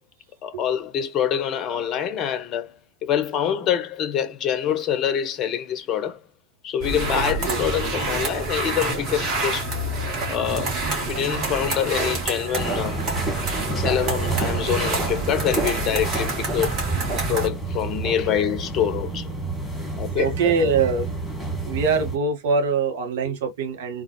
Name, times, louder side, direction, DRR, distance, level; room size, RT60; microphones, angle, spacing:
voice 1, 0.4-2.7 3.0-6.2 6.6-9.7 10.3-10.8 11.1-13.0 13.8-16.8 17.1-19.3 20.0-20.5, left 9 dB, 35° left, 0.6 m, -25 dB
sound 1, 6.8-17.5, right 2 dB, 35° right, 1.8 m, -27 dB
voice 2, 7.1-7.6 18.0-18.1 20.0-21.1 21.6-24.0, right 5 dB, 55° right, 1.3 m, -23 dB
sound 2, 12.5-22.2, right 2 dB, 5° left, 1.4 m, -30 dB
3.9 x 2.4 x 2.9 m
figure-of-eight pair, 90°, 0 cm